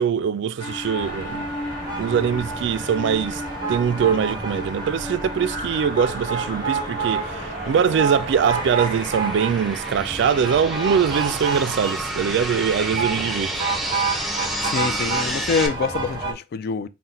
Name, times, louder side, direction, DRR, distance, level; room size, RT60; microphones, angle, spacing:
voice 1, 0.0-1.5 2.0-3.4 3.7-13.5, right 7 dB, 65° right, 0.3 m, -22 dB
sound 1, 0.6-9.9, equal, 30° left, 1.9 m, -34 dB
sound 2, 1.0-16.3, right 4 dB, 25° right, 0.9 m, -29 dB
sound 3, 5.2-15.7, right 1 dB, ahead, 0.5 m, -32 dB
voice 2, 14.6-16.9, left 5 dB, 55° left, 0.3 m, -25 dB
4.2 x 2.1 x 3.8 m
head